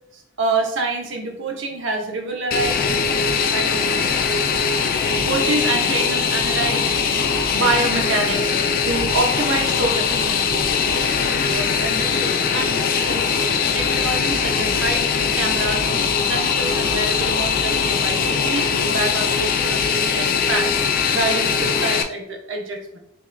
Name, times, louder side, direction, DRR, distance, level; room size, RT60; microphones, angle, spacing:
voice 1, 0.1-2.8 3.5-4.1 5.2-7.2 7.5-8.5 8.9-20.7 21.1-23.0, right 3 dB, 75° right, 1 dB, 0.8 m, -27 dB
Fixed-wing aircraft airplane, 2.5-22.0, left 6 dB, 45° left, 0.3 m, -21 dB
5.7 x 2.5 x 2.2 m, 0.77 s
head